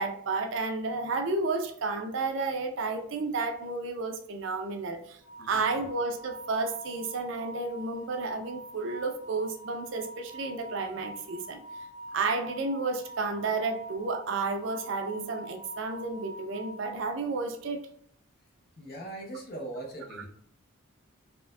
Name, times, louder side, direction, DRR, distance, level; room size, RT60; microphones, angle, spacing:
voice 1, 0.0-5.2 5.5-11.6 12.1-17.8 20.1-20.2, right 3 dB, 60° right, 6 dB, 0.4 m, -31 dB
sound 1, 5.2-17.5, right 1 dB, 20° left, 0.4 m, -45 dB
voice 2, 18.8-20.3, right 1 dB, 45° left, 0 dB, 0.8 m, -40 dB
4.3 x 2.5 x 2.3 m, 0.65 s
head